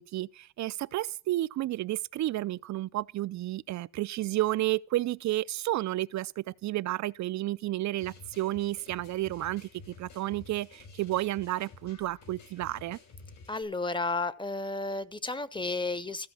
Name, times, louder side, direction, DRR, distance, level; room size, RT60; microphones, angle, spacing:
voice 1, 0.0-13.0, right 16 dB, 65° right, 0.5 m, -31 dB
sound 1, 8.0-13.6, left 4 dB, 65° left, 5.9 m, -51 dB
voice 2, 13.5-16.3, left 3 dB, 15° left, 0.9 m, -32 dB
15.0 x 5.3 x 8.3 m
cardioid pair, 90°, 30 cm